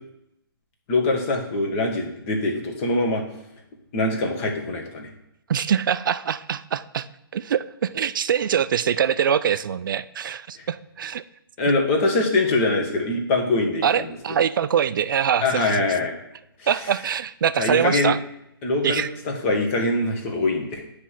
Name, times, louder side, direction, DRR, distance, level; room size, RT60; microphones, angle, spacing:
voice 1, 0.9-3.2 3.9-5.1 11.6-14.1 15.4-16.1 16.6-16.7 17.6-18.2 18.6-20.8, left 2 dB, 30° left, 2 dB, 1.6 m, -23 dB
voice 2, 5.5-7.1 7.3-11.2 13.8-15.9 16.7-18.2 18.8-19.1, right 8 dB, 55° right, 15 dB, 0.4 m, -23 dB
9.4 x 3.4 x 5.8 m, 0.82 s
figure-of-eight pair, 140°, 13 cm